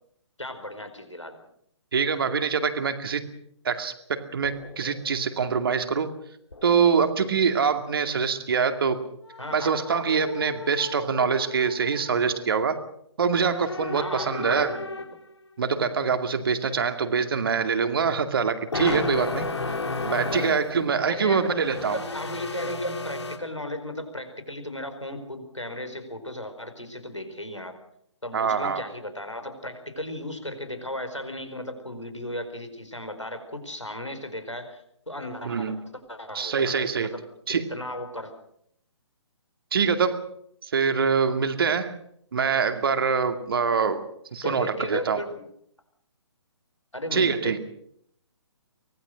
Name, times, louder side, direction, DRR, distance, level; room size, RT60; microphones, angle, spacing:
voice 1, 0.4-1.4 9.4-9.7 13.9-15.0 20.3-20.5 21.1-21.5 21.8-27.7 28.2-35.8 36.1-37.2 37.5-38.3 44.4-45.4 46.9-47.6, left 1 dB, 85° left, 8 dB, 4.8 m, -36 dB
voice 2, 1.9-3.3 3.6-6.1 6.6-9.0 9.5-12.8 13.2-14.8 15.6-19.5 20.0-22.0 28.3-28.8 35.4-35.8 36.3-37.1 37.5-37.7 39.7-40.3 40.6-42.0 42.3-44.0 44.3-45.2 47.1-47.6, right 6 dB, 50° right, 8 dB, 2.4 m, -24 dB
sound 1, 4.4-5.0 5.3-5.5 6.5-7.4 9.3-12.4 13.4-15.2 18.7-20.7 21.0-23.4, left 3 dB, 65° left, 3.8 m, -34 dB
24.5 x 20.0 x 6.4 m, 0.70 s
figure-of-eight pair, 135°, 15 cm